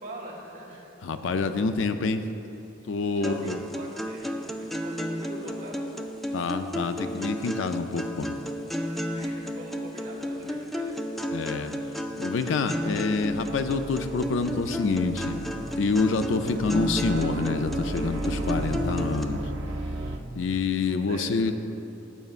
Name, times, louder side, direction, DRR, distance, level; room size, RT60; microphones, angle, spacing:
voice 1, 0.0-0.9 3.2-5.8 6.2-6.5 9.1-11.4 20.9-21.3 22.0-22.1, right 1 dB, 40° right, -3 dB, 1.7 m, -43 dB
voice 2, 1.0-2.3 2.9-3.6 6.3-8.4 11.3-11.7 12.2-15.5 15.8-19.4 20.3-21.5, left 4 dB, 70° left, 9 dB, 0.4 m, -27 dB
sound 1, 3.2-19.2, equal, ahead, 0.3 m, -33 dB
sound 2, 12.9-20.2, right 2 dB, 80° right, 0.7 m, -34 dB
14.5 x 7.9 x 2.4 m, 2.9 s
head